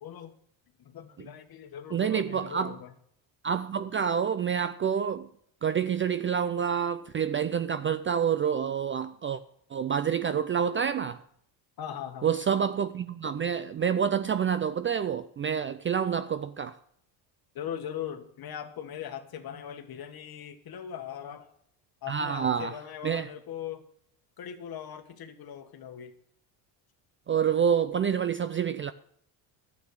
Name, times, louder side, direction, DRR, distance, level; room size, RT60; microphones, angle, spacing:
voice 1, 0.0-0.3 0.8-2.9 11.8-12.3 17.5-21.5 22.0-23.8 24.4-26.1, left 9 dB, 45° left, 1.6 m, -40 dB
voice 2, 1.9-2.7 3.4-5.3 5.6-9.4 9.7-11.2 12.2-16.8 22.1-22.8 23.0-23.3 27.3-28.9, right 7 dB, 25° right, 0.4 m, -28 dB
11.5 x 8.5 x 6.4 m
supercardioid pair, 95°, 49 cm